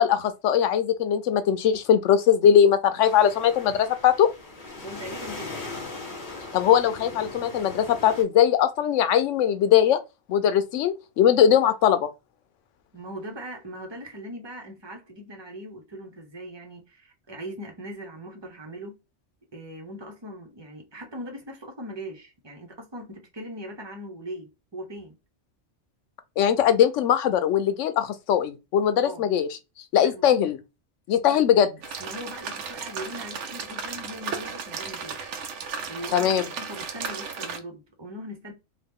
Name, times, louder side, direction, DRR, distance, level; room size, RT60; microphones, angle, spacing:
voice 1, 0.0-4.3 6.5-10.0 10.3-12.1 26.4-29.5 29.9-30.6 31.1-31.7 36.1-36.4, left 9 dB, 85° left, 0.9 m, -20 dB
sound 1, 3.0-8.2, left 3 dB, 45° left, 1.1 m, -39 dB
voice 2, 4.8-5.7 12.9-19.0 19.5-25.2 29.0-29.3 30.0-30.3 31.3-31.4 32.0-35.3 35.9-38.5, equal, 25° right, 0.8 m, -40 dB
sound 2, 31.8-37.6, right 6 dB, 75° right, 0.9 m, -35 dB
3.0 x 2.3 x 3.5 m
omnidirectional pair, 1.2 m